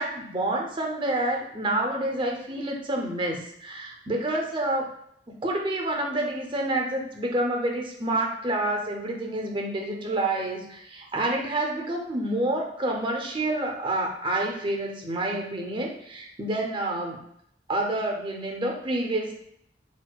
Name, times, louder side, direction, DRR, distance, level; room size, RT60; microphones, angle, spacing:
voice 1, 0.0-4.9 5.3-17.2 17.7-19.3, right 1 dB, 30° right, 1 dB, 0.6 m, -28 dB
4.1 x 2.3 x 2.2 m, 0.71 s
head